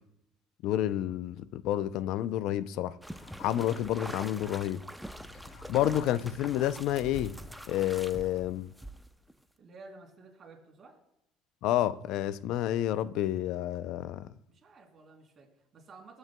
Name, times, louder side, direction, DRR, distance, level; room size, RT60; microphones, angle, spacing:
voice 1, 0.6-3.0 3.4-4.8 5.7-7.4 7.7-8.7 11.6-14.3, left 12 dB, 70° left, 0.4 m, -29 dB
sound 1, 3.0-9.3, equal, ahead, 0.6 m, -44 dB
sound 2, 3.2-3.3 3.7-4.3 4.6-8.5, left 3 dB, 85° left, 2.0 m, -54 dB
voice 2, 9.6-11.0 14.5-16.2, right 3 dB, 40° right, 3.1 m, -53 dB
18.0 x 7.9 x 2.2 m
supercardioid pair, 100°, 0 cm